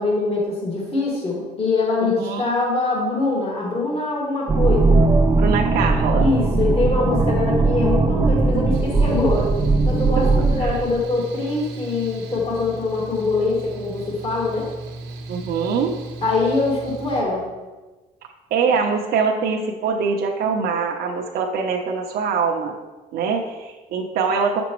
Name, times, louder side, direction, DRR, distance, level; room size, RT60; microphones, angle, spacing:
voice 1, 0.0-5.0 6.1-9.5 9.9-14.7 16.2-17.5, left 3 dB, 35° left, -4 dB, 2.1 m, -23 dB
voice 2, 2.0-2.5 5.4-6.3 10.6-10.7 15.3-15.9 18.5-22.8 23.1-24.6, right 5 dB, 65° right, 1 dB, 0.8 m, -23 dB
sound 1, 4.5-10.7, right 3 dB, 20° right, 0.7 m, -18 dB
Mechanical fan, 8.7-17.2, right 2 dB, 90° right, 1.0 m, -36 dB
7.9 x 6.1 x 3.1 m, 1.2 s
cardioid pair, 110°, 17 cm